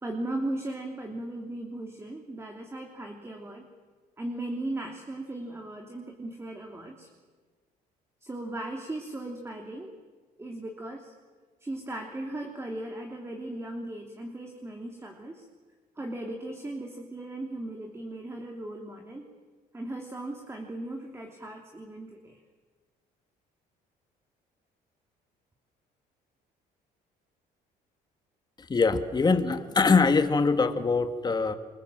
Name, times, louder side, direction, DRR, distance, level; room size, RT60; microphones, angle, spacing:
voice 1, 0.0-3.7 4.2-7.1 8.2-9.9 10.4-11.1 11.6-15.5 16.0-19.3 19.7-22.4, right 1 dB, 15° right, 2 dB, 3.1 m, -37 dB
voice 2, 28.6-31.5, left 4 dB, 25° left, 8 dB, 2.0 m, -23 dB
28.0 x 23.5 x 7.6 m, 1.4 s
cardioid pair, 110°, 17 cm